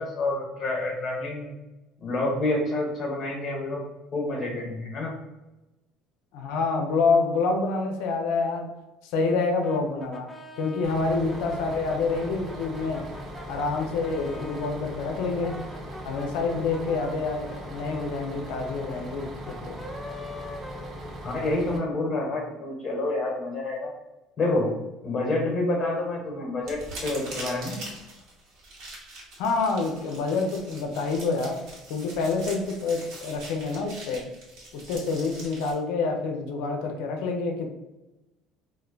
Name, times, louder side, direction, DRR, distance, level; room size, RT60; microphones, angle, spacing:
voice 1, 0.0-1.5 2.0-3.8 4.1-5.1 21.2-23.9 24.4-27.8, left 2 dB, 40° left, -2 dB, 1.1 m, -28 dB
voice 2, 6.3-8.7 9.0-13.1 13.5-15.6 16.0-19.8 29.4-31.6 31.9-34.3 34.7-37.7, left 4 dB, 80° left, 4 dB, 0.6 m, -27 dB
Brass instrument, 9.6-14.8 15.2-21.6, left 1 dB, 5° left, 0.5 m, -44 dB
Bus, 10.8-21.8, equal, 40° right, 0.7 m, -39 dB
sound 1, 26.6-35.7, right 1 dB, 65° right, 1.3 m, -43 dB
2.6 x 2.1 x 3.9 m, 0.99 s
supercardioid pair, 90°, 0 cm